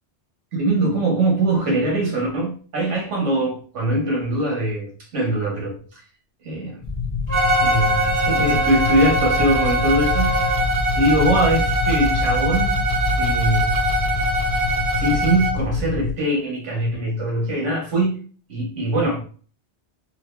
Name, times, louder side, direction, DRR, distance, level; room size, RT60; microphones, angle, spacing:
voice 1, 0.5-5.8 6.4-6.8 7.6-10.3 10.9-12.9 13.2-13.8 14.9-18.2 18.5-19.2, right 1 dB, 85° right, -1 dB, 1.4 m, -22 dB
sound 1, 6.8-16.1, left 3 dB, 45° left, 0.5 m, -26 dB
Wind instrument woodwind instrument, 7.3-10.6, right 4 dB, 30° right, 0.9 m, -28 dB
Bowed string instrument, 7.3-15.6, right 1 dB, 70° right, 0.9 m, -23 dB
4.7 x 2.4 x 2.2 m, 0.42 s
omnidirectional pair, 1.2 m